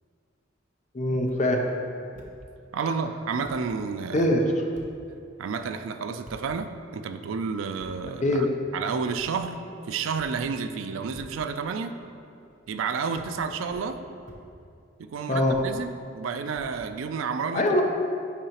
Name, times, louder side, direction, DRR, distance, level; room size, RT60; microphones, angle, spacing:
voice 1, 0.9-1.6 4.1-4.4 8.2-8.5 15.3-15.6 17.5-17.8, left 1 dB, 35° left, 2 dB, 0.5 m, -22 dB
sound 1, 1.2-1.4 2.1-2.3 3.1-3.2 3.4-3.6 4.7-4.9 6.2-6.4 7.8-7.9 9.2-9.3 10.2-10.3 11.1-11.3 12.4-12.8 13.1-13.3 13.7-13.9 14.3-14.4 15.5-15.7 16.5-17.2, equal, 35° right, 0.7 m, -48 dB
voice 2, 2.7-4.3 5.4-9.6 9.9-12.0 12.7-14.0 15.0-17.8, right 5 dB, 90° right, 8 dB, 0.4 m, -31 dB
8.0 x 4.7 x 2.9 m, 2.5 s
head